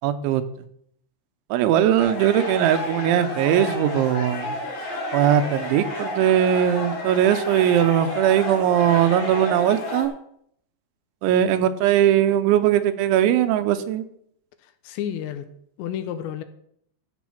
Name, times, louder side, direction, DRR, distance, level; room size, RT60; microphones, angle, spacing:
voice 1, 0.0-0.4 1.5-4.6 5.1-10.1 11.2-14.1, right 10 dB, 85° right, 10 dB, 3.2 m, -20 dB
sound 1, 2.0-10.1, left 1 dB, 50° left, 4.3 m, -31 dB
voice 2, 14.6-15.5 15.8-16.4, left 10 dB, 85° left, 10 dB, 2.8 m, -31 dB
13.5 x 7.2 x 5.9 m, 0.69 s
omnidirectional pair, 5.3 m